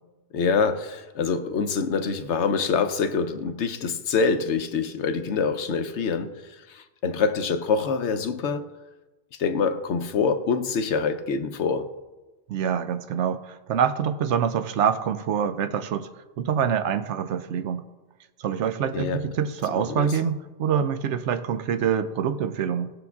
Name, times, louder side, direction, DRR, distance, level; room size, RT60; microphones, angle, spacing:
voice 1, 0.3-8.7 9.4-11.9 18.9-19.2 19.7-20.1, left 5 dB, 70° left, 1.0 m, -25 dB
voice 2, 12.5-16.1 16.4-17.8 18.4-22.9, right 8 dB, 75° right, 0.9 m, -25 dB
19.0 x 7.0 x 2.4 m
omnidirectional pair, 1.2 m